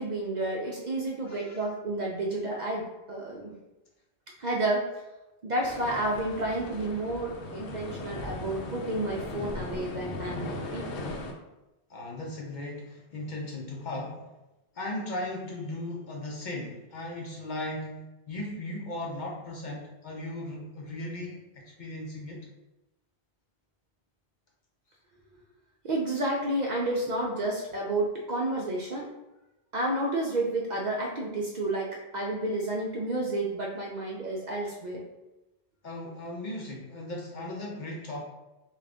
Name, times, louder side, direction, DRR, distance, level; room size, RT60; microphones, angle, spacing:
voice 1, 0.0-3.6 4.4-4.9 5.4-11.2 25.8-29.1 29.7-35.0, right 1 dB, 55° right, -2 dB, 0.5 m, -31 dB
voice 2, 1.3-1.7 11.9-14.3 14.7-22.5 35.8-38.2, left 1 dB, 55° left, -1 dB, 0.6 m, -37 dB
sound 1, 5.6-11.3, left 2 dB, 85° left, 0.9 m, -38 dB
3.7 x 2.4 x 3.3 m, 0.99 s
omnidirectional pair, 1.1 m